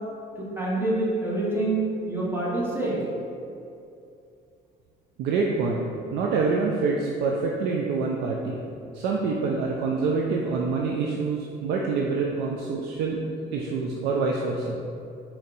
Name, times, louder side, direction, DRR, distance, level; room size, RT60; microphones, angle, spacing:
voice 1, 0.6-3.0, right 2 dB, 15° right, -5 dB, 1.0 m, -26 dB
voice 2, 5.2-5.8 6.1-8.6 8.9-13.2 13.5-14.8, right 4 dB, 85° right, -1 dB, 0.4 m, -26 dB
4.4 x 2.7 x 3.8 m, 2.6 s
cardioid pair, 110°, 17 cm